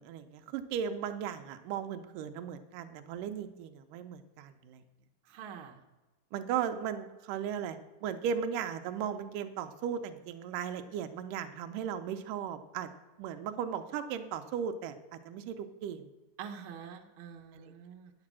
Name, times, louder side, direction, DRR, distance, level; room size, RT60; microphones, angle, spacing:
voice 1, 0.0-4.8 6.3-12.9 13.2-16.1 17.5-17.7, right 8 dB, 90° right, 7 dB, 2.3 m, -37 dB
voice 2, 5.3-5.8 16.4-18.1, right 7 dB, 65° right, 2 dB, 1.4 m, -46 dB
9.8 x 6.7 x 7.4 m, 1.2 s
omnidirectional pair, 3.7 m